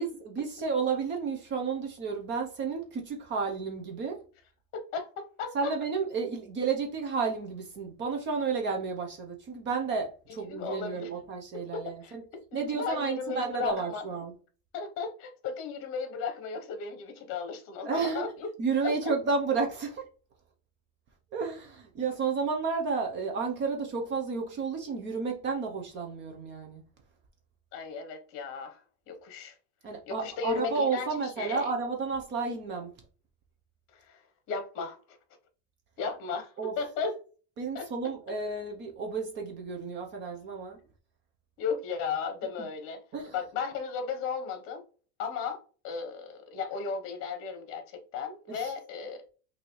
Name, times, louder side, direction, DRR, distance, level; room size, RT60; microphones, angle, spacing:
voice 1, 0.0-4.2 5.5-12.2 12.5-14.3 17.8-18.3 18.6-20.0 21.3-26.8 29.8-32.9 36.6-36.8 37.6-40.8 43.1-43.3 48.5-48.7, right 5 dB, 30° right, 0.7 m, -32 dB
voice 2, 4.7-5.7 10.5-11.1 11.5-12.1 12.5-14.0 14.7-18.5 18.8-19.1 27.7-28.8 29.1-29.5 30.1-31.7 33.9-34.2 34.5-35.2 36.0-37.2 37.7-37.9 41.6-43.0 43.3-44.8 45.2-45.6 45.8-49.2, left 5 dB, 40° left, 1.1 m, -35 dB
5.7 x 2.7 x 3.1 m
cardioid pair, 175°, 35 cm